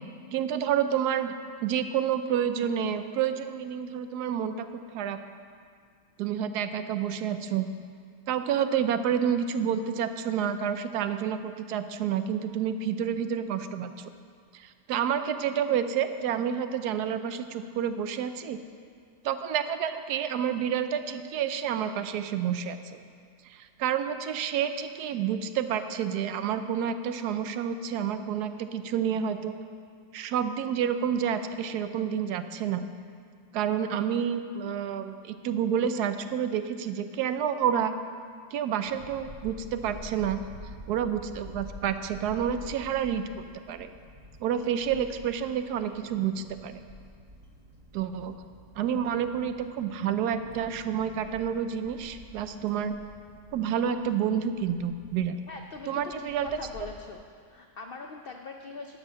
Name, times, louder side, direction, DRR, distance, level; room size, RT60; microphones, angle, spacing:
voice 1, 0.3-1.3 1.6-4.7 4.9-5.2 6.2-7.7 8.3-13.9 14.5-18.6 19.2-23.0 23.5-29.6 30.1-32.9 33.5-37.9 38.5-40.4 40.9-43.2 43.7-43.9 44.4-46.7 47.9-48.3 48.8-52.9 53.5-55.4 55.9-56.5, right 8 dB, 80° right, 10 dB, 1.1 m, -29 dB
sound 1, 38.8-57.1, equal, 30° right, 0.8 m, -48 dB
voice 2, 55.5-57.2 57.5-59.0, left 4 dB, 90° left, 3 dB, 0.5 m, -42 dB
12.0 x 6.3 x 6.2 m, 2.2 s
omnidirectional pair, 1.7 m